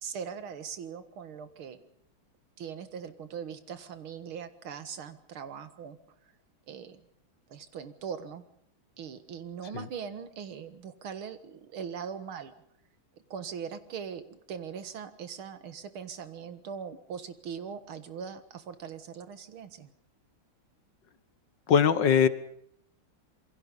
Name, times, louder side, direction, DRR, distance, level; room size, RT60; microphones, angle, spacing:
voice 1, 0.0-1.8 2.6-6.0 6.7-7.1 7.5-8.4 9.0-12.5 13.3-19.9, right 7 dB, 80° right, 11 dB, 2.4 m, -40 dB
voice 2, 21.7-22.3, left 7 dB, 60° left, 13 dB, 1.8 m, -21 dB
27.5 x 22.5 x 5.5 m, 0.69 s
omnidirectional pair, 2.3 m